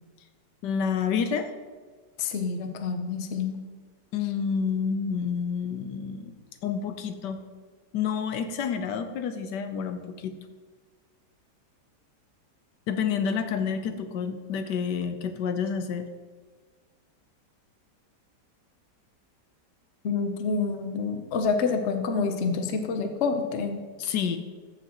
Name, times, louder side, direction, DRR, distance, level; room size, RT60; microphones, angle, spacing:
voice 1, 0.6-1.5 4.1-6.3 6.6-7.4 7.9-10.4 12.9-16.1 24.0-24.4, left 6 dB, 80° left, 8 dB, 1.3 m, -29 dB
voice 2, 2.2-3.6 20.0-23.8, left 5 dB, 50° left, 6 dB, 0.9 m, -27 dB
14.0 x 7.2 x 3.0 m, 1.4 s
omnidirectional pair, 1.8 m